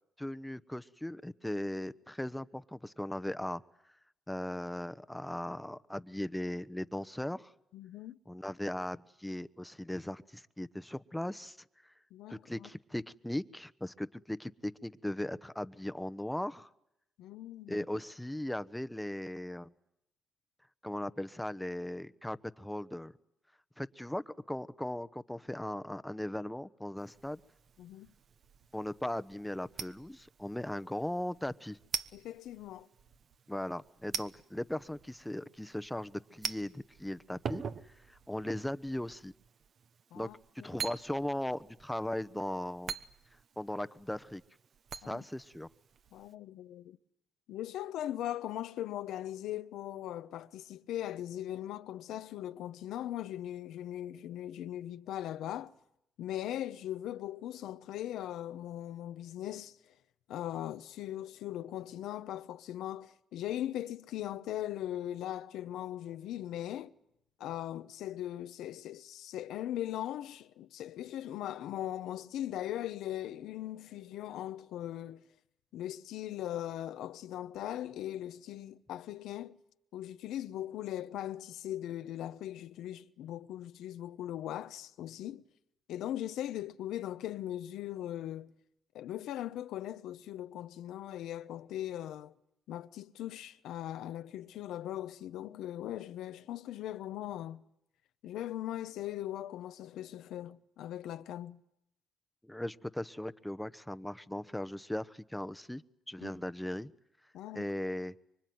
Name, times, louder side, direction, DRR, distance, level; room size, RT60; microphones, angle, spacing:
voice 1, 0.2-3.6 4.3-7.5 8.3-11.6 12.3-16.7 17.7-19.7 20.8-23.1 23.8-27.4 28.7-31.8 33.5-39.3 40.1-40.3 40.6-42.9 43.6-44.4 45.0-45.7 102.4-105.8 106.1-106.9 107.5-108.1, left 1 dB, 5° left, 1.0 m, -38 dB
voice 2, 7.7-8.2 12.1-12.7 17.2-17.8 27.8-28.1 32.1-32.9 40.1-40.7 45.0-45.2 46.1-47.0 47.5-55.7 56.2-59.8 60.3-66.9 67.4-75.2 75.7-79.6 79.9-85.4 85.9-88.5 88.9-92.3 92.7-97.6 98.2-101.6 106.2-106.3 107.3-107.7, left 12 dB, 85° left, 1.0 m, -39 dB
sound 1, 27.0-46.3, right 7 dB, 55° right, 1.1 m, -46 dB
25.5 x 24.5 x 9.5 m
cardioid pair, 90°, 0 cm